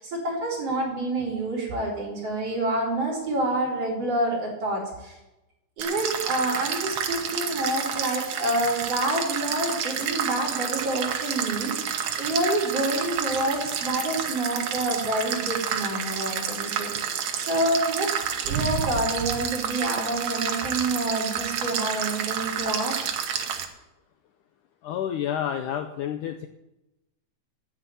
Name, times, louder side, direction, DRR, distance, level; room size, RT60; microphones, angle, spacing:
voice 1, 0.0-5.2 5.8-16.9 17.4-18.1 18.4-23.0, right 1 dB, 40° right, -4 dB, 4.9 m, -28 dB
sound 1, 5.8-23.7, right 8 dB, 65° right, 2.0 m, -30 dB
voice 2, 24.8-26.5, left 9 dB, 80° left, 7 dB, 1.9 m, -29 dB
9.7 x 9.1 x 9.7 m, 0.96 s
omnidirectional pair, 4.2 m